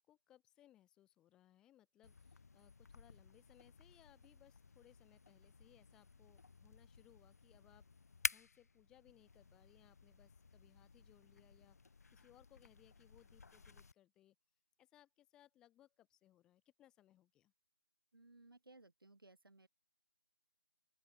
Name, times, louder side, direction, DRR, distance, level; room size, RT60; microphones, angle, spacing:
voice 1, 0.0-7.8 8.3-11.8 12.1-14.3 14.8-17.5, left 13 dB, 5° left, 1.0 m, -68 dB
sound 1, 2.0-13.9, left 4 dB, 40° left, 0.8 m, -50 dB
voice 2, 18.1-19.7, right 2 dB, 65° right, 3.4 m, -62 dB
open air
figure-of-eight pair, 155°, 12 cm